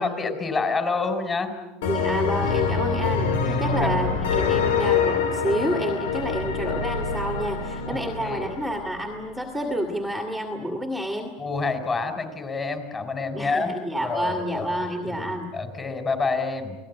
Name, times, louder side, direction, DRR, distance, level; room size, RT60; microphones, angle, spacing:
voice 1, 0.0-1.5 3.4-3.9 7.9-8.5 11.4-13.7 14.0-16.8, left 4 dB, 20° left, 7 dB, 4.2 m, -28 dB
sound 1, 1.8-9.4, left 5 dB, 90° left, 3.1 m, -25 dB
voice 2, 1.9-11.4 13.3-15.5, equal, ahead, 3 dB, 2.2 m, -29 dB
29.5 x 18.5 x 9.5 m, 1.1 s
supercardioid pair, 140°, 0 cm